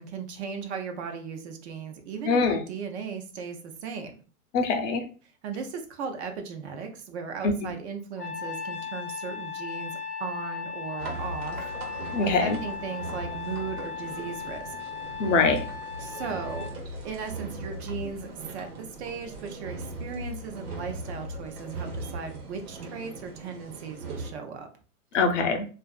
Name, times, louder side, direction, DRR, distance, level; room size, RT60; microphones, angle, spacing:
voice 1, 0.0-4.1 5.4-11.7 12.2-14.7 16.0-16.7 17.0-18.3 18.5-24.7, right 6 dB, 50° right, 6 dB, 0.5 m, -37 dB
voice 2, 2.3-2.6 4.5-5.1 7.4-7.7 12.1-12.6 15.2-15.6 25.1-25.7, left 4 dB, 55° left, 6 dB, 0.6 m, -23 dB
Trumpet, 8.2-16.7, left 6 dB, 10° left, 0.4 m, -37 dB
sound 1, 11.0-24.3, right 2 dB, 85° right, 1.1 m, -39 dB
2.5 x 2.3 x 2.3 m, 0.37 s
hypercardioid pair, 135°, 45 cm